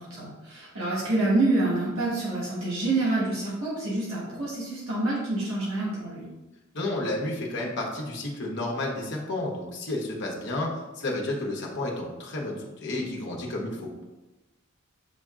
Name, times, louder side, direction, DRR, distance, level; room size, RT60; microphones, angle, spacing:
voice 1, 0.0-6.2, right 2 dB, 80° right, -7 dB, 1.4 m, -27 dB
voice 2, 6.7-13.9, left 2 dB, 55° left, -1 dB, 1.0 m, -31 dB
7.9 x 2.8 x 2.4 m, 1.1 s
head